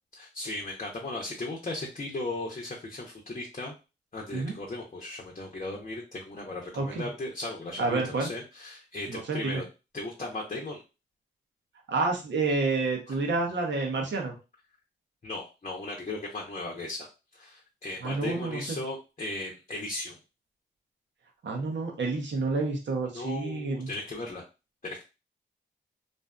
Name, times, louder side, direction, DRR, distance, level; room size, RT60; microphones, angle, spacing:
voice 1, 0.1-3.7 4.1-9.6 9.9-10.8 13.1-13.2 15.2-17.1 17.3-20.2 23.1-24.4 24.8-25.0, left 2 dB, 35° left, -1 dB, 0.7 m, -37 dB
voice 2, 6.7-7.1 7.8-8.3 9.1-9.6 11.9-14.4 18.0-18.8 21.4-23.9, right 3 dB, 70° right, 1 dB, 0.8 m, -29 dB
2.6 x 2.4 x 2.2 m, 0.30 s
supercardioid pair, 45°, 20 cm